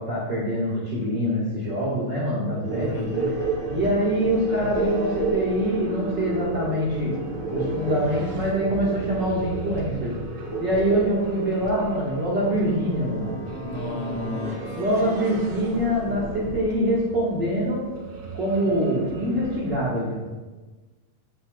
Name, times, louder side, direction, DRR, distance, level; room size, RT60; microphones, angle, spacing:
voice 1, 0.0-3.0 3.7-7.2 7.5-10.2 10.6-13.3 14.7-17.8 18.3-20.3, equal, 45° right, -7 dB, 1.7 m, -24 dB
sound 1, 2.6-16.6, right 2 dB, 40° left, 1.6 m, -32 dB
voice 2, 2.8-3.4 13.6-14.6, left 2 dB, 65° left, 1 dB, 1.5 m, -32 dB
sound 2, 3.2-19.7, right 2 dB, 65° right, 2.6 m, -37 dB
10.0 x 8.0 x 2.3 m, 1.2 s
omnidirectional pair, 3.6 m